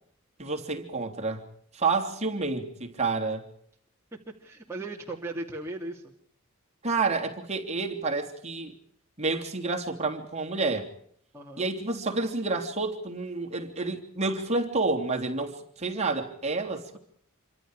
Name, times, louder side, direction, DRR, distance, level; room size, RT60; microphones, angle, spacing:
voice 1, 0.4-1.4 1.7-3.4 6.8-8.7 9.2-10.9 11.6-17.0, right 3 dB, 30° right, 3.1 m, -29 dB
voice 2, 4.4-6.0 11.3-11.7, right 2 dB, 10° right, 2.5 m, -37 dB
27.5 x 25.0 x 4.9 m
head